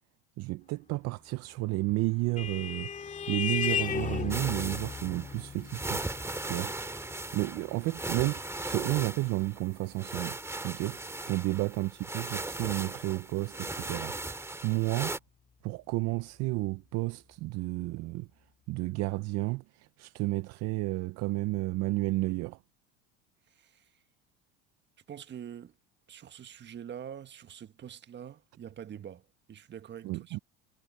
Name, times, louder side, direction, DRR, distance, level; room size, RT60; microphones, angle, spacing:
voice 1, 0.4-2.9 3.3-6.0 6.4-6.7 7.3-10.4 10.6-14.3 14.6-15.2 15.6-18.3 18.7-22.6 30.0-30.4, right 21 dB, 55° right, 0.7 m, -32 dB
Vehicle horn car horn honking, 1.7-10.7, left 7 dB, 25° left, 2.2 m, -37 dB
sound 1, 4.3-15.2, right 2 dB, 10° right, 2.3 m, -38 dB
voice 2, 23.5-24.0 25.1-25.8 26.1-30.4, right 9 dB, 35° right, 1.6 m, -45 dB
supercardioid pair, 100°, 31 cm